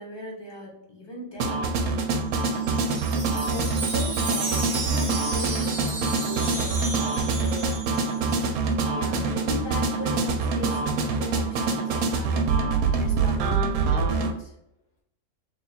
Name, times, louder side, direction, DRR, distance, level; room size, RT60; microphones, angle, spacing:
voice 1, 0.0-1.6 8.9-12.5 13.0-14.5, left 2 dB, 20° left, -2 dB, 0.8 m, -38 dB
sound 1, 1.4-14.3, right 4 dB, 90° right, 1.1 m, -25 dB
Wind chime, 2.2-8.4, right 3 dB, 40° right, 0.4 m, -34 dB
voice 2, 3.4-7.8, left 3 dB, 55° left, -4 dB, 0.8 m, -38 dB
3.4 x 2.3 x 4.2 m, 0.79 s
omnidirectional pair, 1.5 m